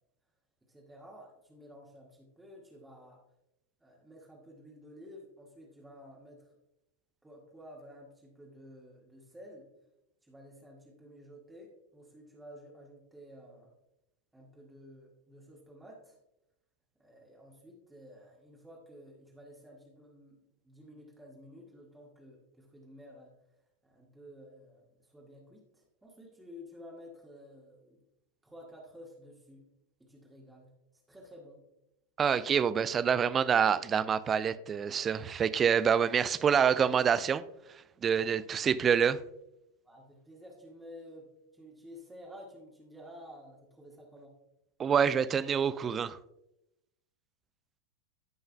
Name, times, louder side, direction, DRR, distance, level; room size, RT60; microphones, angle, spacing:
voice 1, 0.7-3.2 3.8-6.5 7.2-9.7 10.2-13.7 14.3-16.1 17.0-23.3 23.8-28.0 28.4-29.7 30.0-30.7 31.1-31.6 38.2-38.4 39.8-44.3, equal, 5° right, 1.8 m, -52 dB
voice 2, 32.2-37.4 38.0-39.2 44.8-46.2, right 7 dB, 25° right, 0.4 m, -26 dB
15.0 x 5.5 x 2.2 m
figure-of-eight pair, 90°, 0 cm